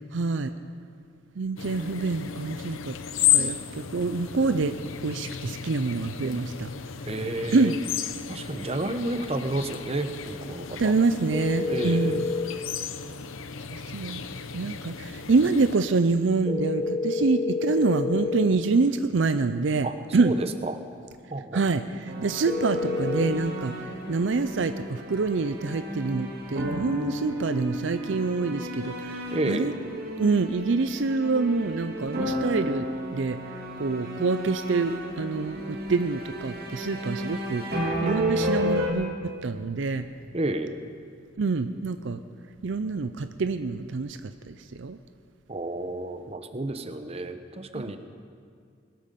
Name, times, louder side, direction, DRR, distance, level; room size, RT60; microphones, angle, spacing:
voice 1, 0.1-0.5 1.4-3.0 3.3-4.8 5.0-6.7 7.5-7.8 10.8-12.3 13.7-14.2 14.5-19.9 20.1-20.3 21.5-23.7 24.1-29.2 29.5-29.7 30.2-32.9 33.1-33.4 33.8-40.0 41.4-42.2 42.6-45.0 47.7-47.9, right 4 dB, 65° right, 10 dB, 0.5 m, -26 dB
sound 1, 1.6-15.8, left 9 dB, 80° left, 0.8 m, -33 dB
voice 2, 7.1-7.8 8.3-10.9 11.7-12.3 19.8-20.8 21.3-21.6 29.3-29.7 40.3-40.7 45.5-48.0, right 2 dB, 30° right, 8 dB, 0.8 m, -31 dB
sound 2, 11.3-12.5 16.4-18.5 22.4-23.3, left 3 dB, 15° left, 1.0 m, -28 dB
sound 3, 22.1-38.9, equal, 50° right, 2.3 m, -33 dB
21.5 x 13.0 x 5.3 m, 2.2 s
head